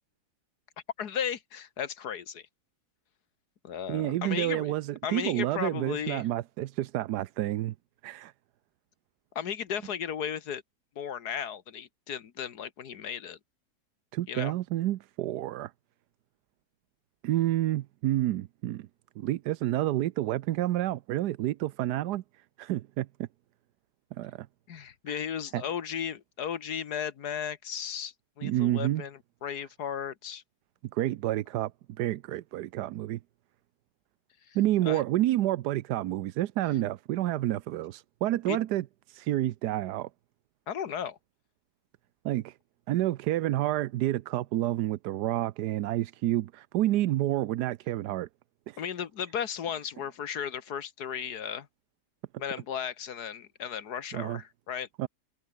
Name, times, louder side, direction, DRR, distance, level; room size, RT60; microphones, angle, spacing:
voice 1, 1.0-2.5 3.6-4.7 5.0-6.3 9.4-10.6 11.0-13.4 14.3-14.5 24.7-30.4 34.4-34.6 34.8-35.0 38.5-38.6 40.7-41.2 48.8-51.7 52.4-54.9, left 8 dB, 75° left, 1.8 m, -35 dB
voice 2, 3.9-7.7 8.0-8.3 14.1-15.7 17.2-18.9 19.2-22.2 22.6-23.3 24.2-24.5 25.1-25.2 25.5-25.6 28.4-29.0 30.9-31.7 32.0-33.2 34.5-40.1 42.2-42.5 42.9-48.3 48.7-48.8 54.1-54.4 55.0-55.1, right 14 dB, 85° right, 1.2 m, -29 dB
omnidirectional pair, 1.7 m